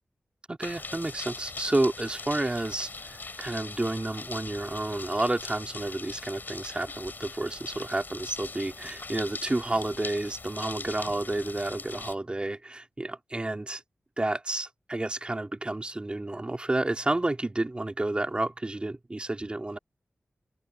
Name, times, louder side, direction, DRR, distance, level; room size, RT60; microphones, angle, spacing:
voice 1, 0.5-13.8 14.2-19.8, right 2 dB, 25° right, 2.7 m, -30 dB
sound 1, 0.6-12.1, left 3 dB, 50° left, 4.2 m, -41 dB
wide cardioid pair, 115°, 4 cm